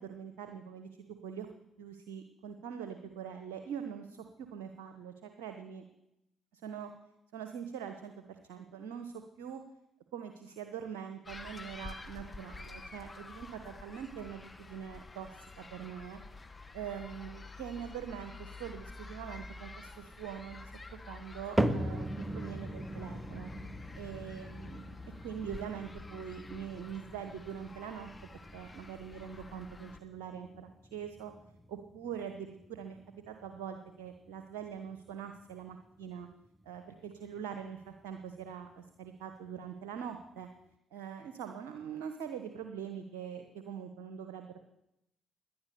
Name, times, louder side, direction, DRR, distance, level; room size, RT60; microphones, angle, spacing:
voice 1, 0.0-1.5 1.8-4.3 4.5-5.8 6.5-6.9 7.3-9.6 10.1-15.3 15.6-16.2 16.7-22.1 22.3-23.5 24.0-24.9 25.2-28.1 28.5-31.3 31.7-33.0 33.3-36.3 36.6-40.5 40.9-44.6, right 8 dB, 75° right, 7 dB, 1.1 m, -43 dB
sound 1, 11.3-30.0, left 3 dB, 25° left, 1.3 m, -49 dB
sound 2, 21.6-37.9 38.2-38.7 39.3-39.4 40.2-40.3, right 1 dB, 10° right, 1.2 m, -40 dB
18.0 x 10.5 x 6.8 m, 0.85 s
hypercardioid pair, 45°, 0 cm